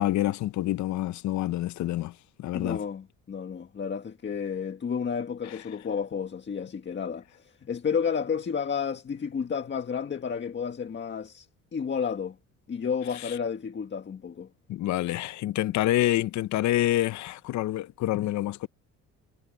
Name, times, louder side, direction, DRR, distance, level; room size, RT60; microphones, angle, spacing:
voice 1, 0.0-2.1 2.4-2.8 5.5-5.6 13.1-13.3 14.7-18.7, left 14 dB, 65° left, 0.7 m, -27 dB
voice 2, 2.5-12.4 12.7-14.5, left 6 dB, 35° left, 1.8 m, -31 dB
cardioid pair, 105°, 31 cm